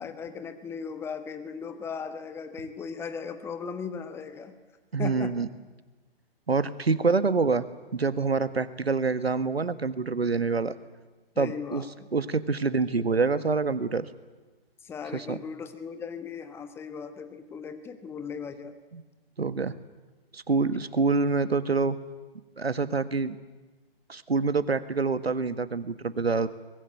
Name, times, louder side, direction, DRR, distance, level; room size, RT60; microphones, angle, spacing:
voice 1, 0.0-4.6 5.0-5.4 11.3-12.1 14.8-18.8, left 6 dB, 10° left, 9 dB, 1.2 m, -37 dB
voice 2, 4.9-5.5 6.5-7.6 7.9-10.8 11.4-11.8 12.1-14.1 15.1-15.4 18.9-19.0 19.4-19.7 20.3-22.0 22.6-23.3 24.1-26.5, right 4 dB, 80° right, 13 dB, 1.7 m, -26 dB
23.5 x 20.5 x 9.2 m, 1.2 s
figure-of-eight pair, 135°, 30 cm